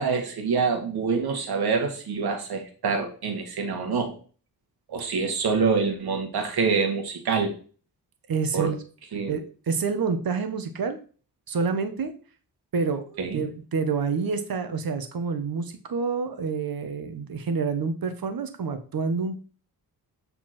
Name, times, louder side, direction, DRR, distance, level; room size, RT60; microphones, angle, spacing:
voice 1, 0.0-4.2 4.9-7.5 8.5-8.7 9.1-9.3 13.2-13.5, right 5 dB, 90° right, 2 dB, 1.8 m, -26 dB
voice 2, 8.3-8.8 9.3-11.0 11.5-12.1 12.7-19.4, right 5 dB, 70° right, 7 dB, 1.3 m, -28 dB
7.8 x 4.3 x 4.3 m, 0.39 s
cardioid pair, 80°, 37 cm